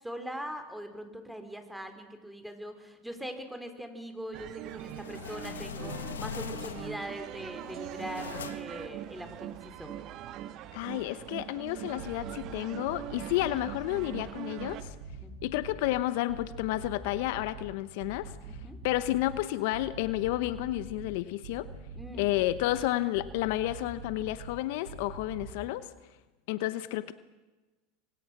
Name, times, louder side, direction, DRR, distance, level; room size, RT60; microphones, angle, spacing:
voice 1, 0.0-10.1 15.2-15.6 18.5-18.8 22.0-22.3, equal, 5° right, 7 dB, 3.9 m, -42 dB
sound 1, 4.3-14.8, right 12 dB, 50° right, 1.5 m, -42 dB
sound 2, 4.7-7.1 7.6-8.8, left 8 dB, 90° left, 1.1 m, -41 dB
voice 2, 10.7-14.9 15.4-18.4 18.8-21.7 22.2-25.9 26.5-27.1, left 16 dB, 65° left, 14 dB, 1.0 m, -31 dB
sound 3, 11.8-12.5 12.8-14.2 14.6-16.0 16.3-17.7 18.0-19.4 19.7-21.1 21.4-22.8 23.1-24.5 24.8-25.5, right 4 dB, 80° right, 7.3 m, -44 dB
27.0 x 23.5 x 6.1 m, 1.2 s
hypercardioid pair, 90°, 0 cm